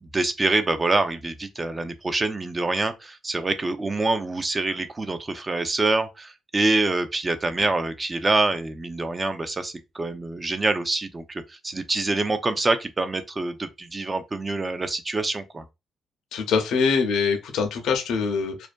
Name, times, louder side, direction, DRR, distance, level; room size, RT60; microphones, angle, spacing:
voice 1, 0.0-15.6, right 2 dB, 25° right, 0.4 m, -26 dB
voice 2, 16.3-18.7, left 5 dB, 80° left, 0.6 m, -24 dB
2.4 x 2.2 x 2.4 m
cardioid pair, 90°, 0 cm